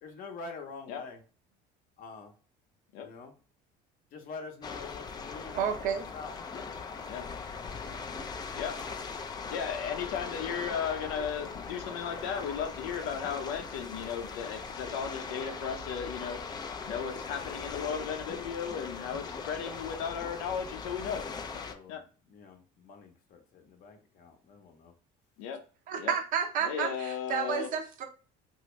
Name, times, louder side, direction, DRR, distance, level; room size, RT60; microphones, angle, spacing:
voice 1, 0.0-1.2 2.0-2.3 3.0-3.3 4.1-6.4 21.1-24.9, left 4 dB, 55° left, 3 dB, 0.9 m, -46 dB
sound 1, 4.6-21.7, left 5 dB, 25° left, 0.4 m, -40 dB
voice 2, 5.5-6.0 25.9-28.0, right 7 dB, 50° right, 4 dB, 0.7 m, -31 dB
voice 3, 9.5-16.4 16.9-21.2 21.5-22.0 25.4-25.6 26.0-26.1 26.6-27.7, left 7 dB, 90° left, 6 dB, 0.7 m, -35 dB
2.9 x 2.7 x 3.2 m, 0.37 s
cardioid pair, 120°, 18 cm